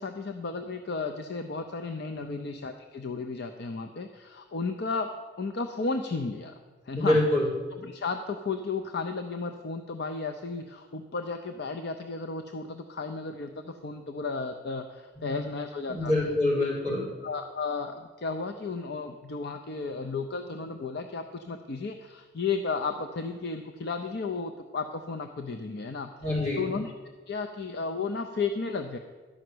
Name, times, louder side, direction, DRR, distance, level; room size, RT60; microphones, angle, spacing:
voice 1, 0.0-5.1 5.4-6.5 6.9-7.2 7.7-16.1 16.6-16.7 17.2-26.1 26.6-26.9 27.3-29.0, left 4 dB, 60° left, 6 dB, 0.6 m, -33 dB
voice 2, 6.9-7.5 15.1-15.4 15.9-17.1 26.2-26.6, left 1 dB, 40° left, -6 dB, 4.2 m, -26 dB
12.0 x 5.6 x 7.8 m, 1.4 s
head